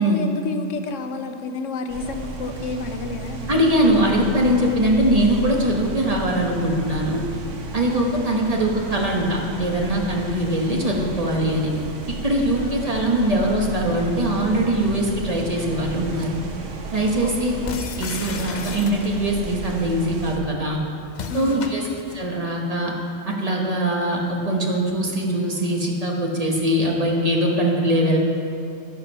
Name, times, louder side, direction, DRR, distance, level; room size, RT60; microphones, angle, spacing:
voice 1, 0.0-3.6 7.9-8.4 12.5-12.9 17.2-17.8 21.3-22.0, left 4 dB, 80° left, 7 dB, 1.0 m, -31 dB
sound 1, 1.9-20.4, right 4 dB, 70° right, 1.3 m, -34 dB
voice 2, 3.5-7.2 7.7-11.7 12.2-16.3 16.9-17.5 18.0-20.8 21.3-21.8 22.1-22.9 23.3-28.2, right 1 dB, 30° right, -1 dB, 1.1 m, -22 dB
sound 2, 17.7-19.4 21.1-22.3, left 5 dB, 55° left, 0.5 m, -34 dB
14.5 x 5.2 x 5.5 m, 2.5 s
omnidirectional pair, 1.3 m